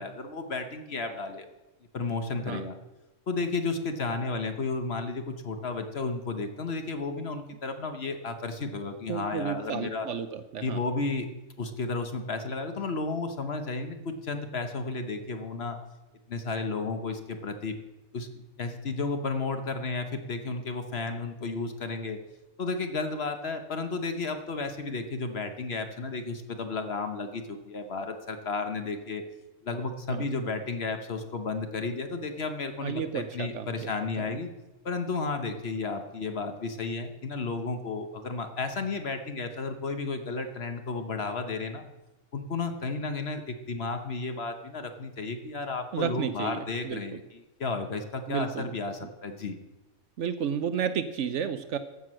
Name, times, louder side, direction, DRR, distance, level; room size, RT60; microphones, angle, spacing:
voice 1, 0.0-1.5 1.9-2.7 3.3-10.1 10.6-11.3 11.6-15.8 16.3-17.7 18.1-18.3 18.6-22.2 22.6-29.2 29.6-34.5 34.8-41.8 42.3-49.6, left 3 dB, 50° left, 7 dB, 1.1 m, -33 dB
voice 2, 9.1-10.8 30.1-30.3 32.8-33.9 34.2-34.4 45.9-47.2 48.3-48.7 49.0-49.1 50.2-51.8, right 8 dB, 65° right, 11 dB, 0.9 m, -32 dB
14.5 x 6.2 x 6.2 m, 1.1 s
omnidirectional pair, 1.5 m